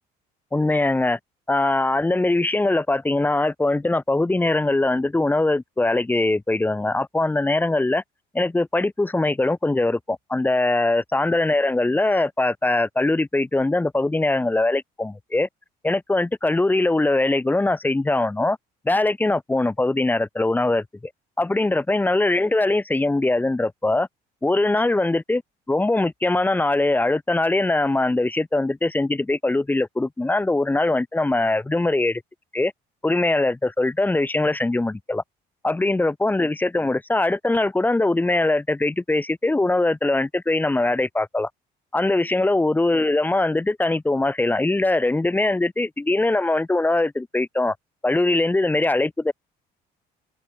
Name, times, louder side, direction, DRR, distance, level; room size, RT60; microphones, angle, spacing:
voice 1, 0.5-1.2 1.5-8.0 8.3-15.5 15.8-18.6 18.8-20.8 21.4-24.1 24.4-25.4 25.7-32.2 32.5-32.7 33.0-35.2 35.6-41.5 41.9-47.7 48.0-49.3, left 2 dB, 10° left, 0.7 m, -21 dB
cardioid pair, 110°, 17 cm